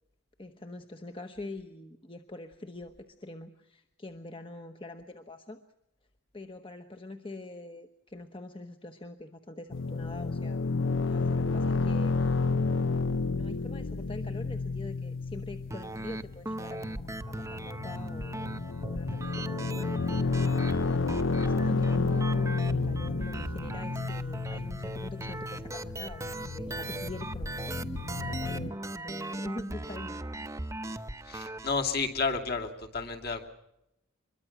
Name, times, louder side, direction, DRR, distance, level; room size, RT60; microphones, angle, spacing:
voice 1, 0.4-5.6 6.3-10.6 11.0-12.3 13.3-18.6 18.8-22.3 22.7-27.5 28.1-30.2, left 2 dB, 25° left, 6 dB, 1.1 m, -44 dB
sound 1, 9.7-28.7, left 3 dB, 65° left, 0.8 m, -31 dB
sound 2, 15.7-31.7, right 1 dB, 15° right, 0.8 m, -38 dB
voice 2, 31.3-33.5, left 4 dB, 50° left, 4 dB, 2.7 m, -31 dB
25.0 x 22.5 x 6.0 m, 0.87 s
head